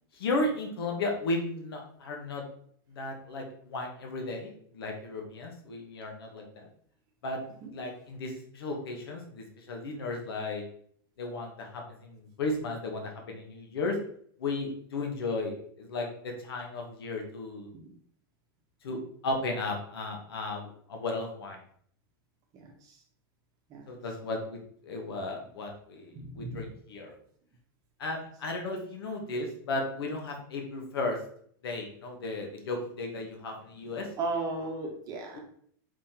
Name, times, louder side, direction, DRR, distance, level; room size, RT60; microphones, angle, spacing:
voice 1, 0.1-2.5 2.9-6.7 7.2-7.4 7.7-10.6 11.2-14.0 14.4-17.7 18.8-21.6 23.9-27.1 28.0-31.2 31.6-34.1 35.3-35.4, left 2 dB, 90° left, 2 dB, 1.1 m, -35 dB
voice 2, 26.1-26.7 34.2-35.4, right 3 dB, 30° right, 1 dB, 0.9 m, -35 dB
4.8 x 3.6 x 2.9 m, 0.62 s
supercardioid pair, 150°, 12 cm